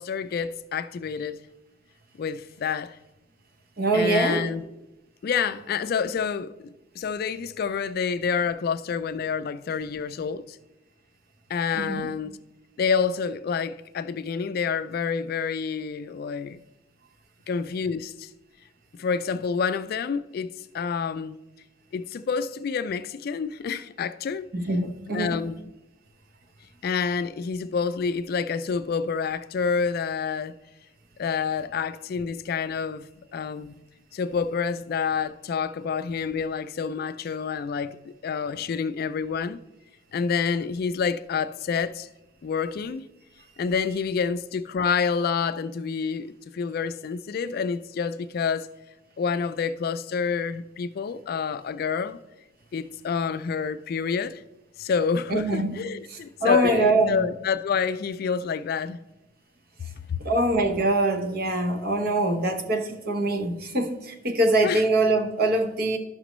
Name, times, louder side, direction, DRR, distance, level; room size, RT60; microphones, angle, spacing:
voice 1, 0.0-1.4 2.2-3.0 3.9-4.6 5.2-10.6 11.5-12.4 12.8-16.6 17.5-18.3 19.0-21.4 21.9-24.5 25.1-25.6 26.8-30.5 31.2-33.8 34.1-39.6 40.1-42.1 42.4-43.1 43.6-48.7 49.2-52.2 52.7-54.4 54.8-59.0 60.1-60.2 64.6-64.8, left 6 dB, 50° left, 0.3 m, -28 dB
voice 2, 3.8-4.5 11.7-12.1 24.5-25.4 55.3-55.7 56.1-57.3 60.2-66.0, right 2 dB, 50° right, 0.9 m, -24 dB
12.0 x 5.9 x 3.0 m
head